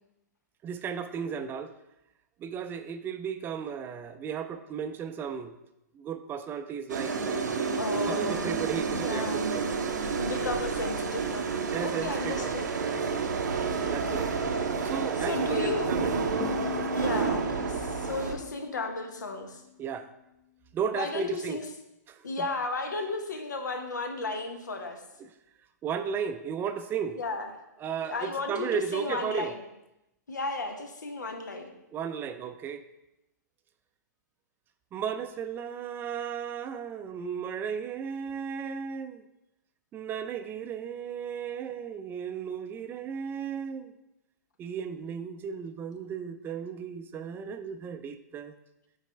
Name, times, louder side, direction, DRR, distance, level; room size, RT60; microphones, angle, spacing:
voice 1, 0.6-1.7 2.4-5.5 5.9-9.6 11.7-12.5 13.6-14.4 14.8-16.1 16.7-17.0 19.8-20.1 20.7-21.6 22.1-22.5 25.2-25.3 25.8-27.2 27.8-29.5 31.9-32.8 34.9-39.2 39.9-43.9 44.6-48.5, right 7 dB, 20° right, 9 dB, 0.4 m, -35 dB
sound 1, 6.9-18.3, right 5 dB, 80° right, 0.7 m, -30 dB
voice 2, 7.8-8.6 8.9-9.4 10.1-12.6 13.8-14.2 15.2-15.9 16.6-19.6 20.9-21.6 22.2-25.0 27.2-27.5 28.0-29.6 30.3-31.7, left 3 dB, 85° left, 6 dB, 0.9 m, -34 dB
sound 2, 16.4-19.4, left 11 dB, 45° left, 0.6 m, -40 dB
8.8 x 4.1 x 3.3 m, 0.89 s
hypercardioid pair, 120°, 10 cm